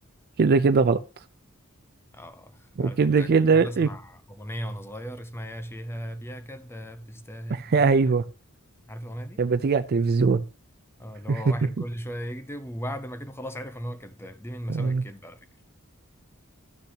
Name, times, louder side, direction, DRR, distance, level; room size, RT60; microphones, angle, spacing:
voice 1, 0.4-1.0 2.8-3.9 7.5-8.2 9.4-10.4 11.3-11.5 14.7-15.0, right 4 dB, 45° right, 0.4 m, -21 dB
voice 2, 2.1-8.1 8.9-9.4 11.0-15.4, equal, 10° left, 0.8 m, -37 dB
13.0 x 6.6 x 2.8 m
head